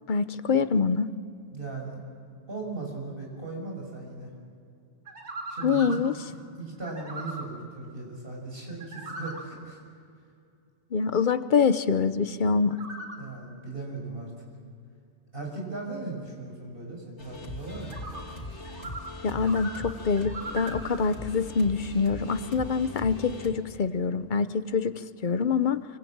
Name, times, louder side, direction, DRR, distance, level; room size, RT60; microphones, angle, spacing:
voice 1, 0.1-1.1 5.6-6.2 10.9-12.8 19.2-25.9, left 5 dB, 50° left, 12 dB, 1.0 m, -25 dB
voice 2, 1.5-2.0 2.5-4.3 5.5-6.0 6.6-9.8 13.2-14.3 15.3-18.0, right 3 dB, 55° right, 0 dB, 6.5 m, -38 dB
sound 1, 5.1-6.1 6.9-7.5 8.7-9.4 12.7-13.2 17.8-18.2 18.6-19.1 19.4-21.0, right 2 dB, 80° right, 3.1 m, -39 dB
sound 2, 17.2-23.5, left 1 dB, 80° left, 3.1 m, -40 dB
25.5 x 24.5 x 8.7 m, 2.4 s
omnidirectional pair, 1.2 m